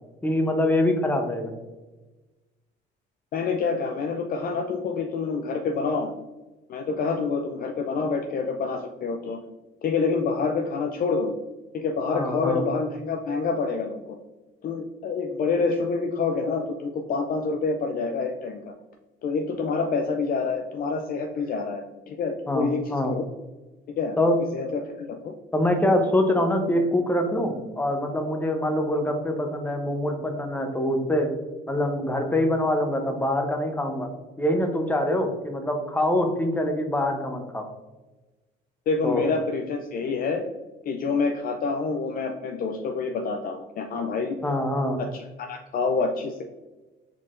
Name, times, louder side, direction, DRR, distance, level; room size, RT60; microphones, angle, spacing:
voice 1, 0.2-1.5 12.1-12.6 22.5-23.1 24.2-24.4 25.5-31.3 31.7-34.1 34.4-37.7 39.0-39.2 44.4-45.0, left 1 dB, 10° left, 4 dB, 0.7 m, -24 dB
voice 2, 3.3-6.1 6.7-9.4 9.8-11.3 11.7-14.2 14.6-18.6 19.2-23.2 24.0-24.2 24.5-25.3 38.9-40.4 40.9-44.4 45.1-46.4, left 4 dB, 50° left, 3 dB, 0.4 m, -27 dB
4.6 x 3.7 x 2.5 m, 1.2 s
cardioid pair, 115°, 19 cm